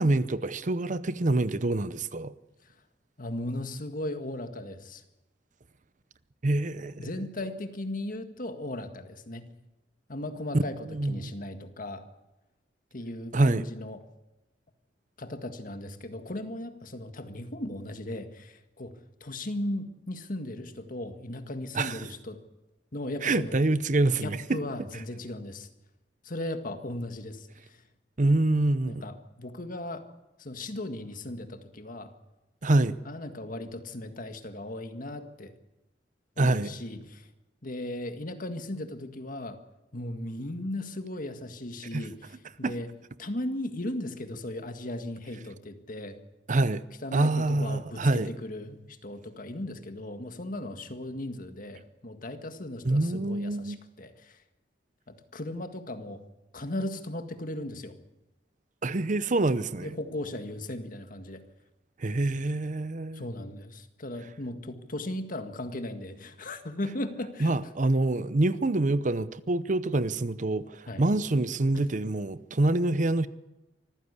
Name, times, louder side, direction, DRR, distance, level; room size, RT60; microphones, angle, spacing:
voice 1, 0.0-2.3 6.4-7.1 10.5-10.6 10.9-11.3 13.3-13.6 21.7-22.1 23.2-24.6 28.2-29.1 32.6-33.0 36.4-36.8 41.9-42.0 42.6-42.7 46.5-46.8 47.1-48.3 52.8-53.8 58.8-59.9 62.0-63.2 67.4-73.3, right 2 dB, 45° right, 0.8 m, -26 dB
voice 2, 3.2-5.0 7.0-9.4 10.1-12.0 12.9-14.0 15.2-18.9 19.2-22.4 22.9-23.6 24.2-25.7 26.2-27.8 28.8-30.1 30.4-32.1 33.0-35.5 36.4-37.3 37.6-39.6 39.9-42.9 43.2-46.2 47.0-54.4 55.1-56.2 56.5-58.0 59.8-61.4 63.1-67.5 70.9-71.0 71.7-71.9, left 1 dB, 50° left, 1.8 m, -37 dB
24.5 x 15.0 x 8.3 m
head